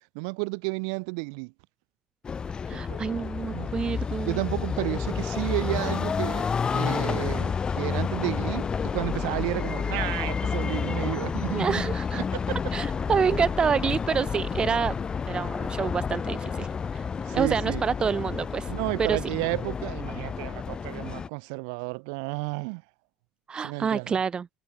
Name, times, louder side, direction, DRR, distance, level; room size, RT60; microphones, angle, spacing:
voice 1, 0.1-1.5 2.7-3.0 3.5-3.7 4.2-11.8 12.1-12.6 17.2-17.8 18.7-22.8 23.6-24.1, right 37 dB, 65° right, 0.7 m, -32 dB
sound 1, 2.2-21.3, left 6 dB, 30° left, 1.6 m, -30 dB
voice 2, 2.7-4.4 11.5-12.2 12.7-15.0 15.3-17.1 17.3-18.7 19.0-19.2 23.5-24.5, right 6 dB, 35° right, 2.0 m, -27 dB
figure-of-eight pair, 60°, 3 cm